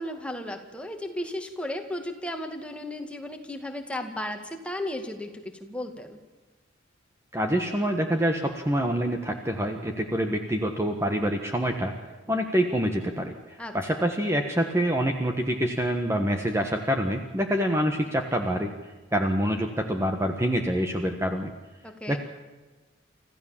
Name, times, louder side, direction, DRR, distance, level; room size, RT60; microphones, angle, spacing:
voice 1, 0.0-6.2 13.6-14.1 21.8-22.2, left 1 dB, 5° left, 4 dB, 2.2 m, -35 dB
voice 2, 7.3-11.9 12.3-18.7 19.1-21.5 22.1-22.2, equal, 15° right, 4 dB, 1.4 m, -26 dB
26.5 x 15.0 x 7.4 m, 1.2 s
head